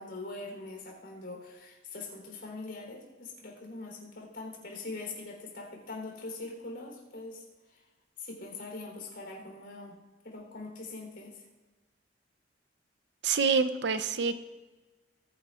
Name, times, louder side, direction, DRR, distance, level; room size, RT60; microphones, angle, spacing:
voice 1, 0.0-7.4 8.2-10.0 10.2-11.4, left 2 dB, 65° left, 0 dB, 3.7 m, -42 dB
voice 2, 13.2-14.4, right 5 dB, 65° right, 11 dB, 0.7 m, -26 dB
19.5 x 10.0 x 2.5 m, 1.2 s
head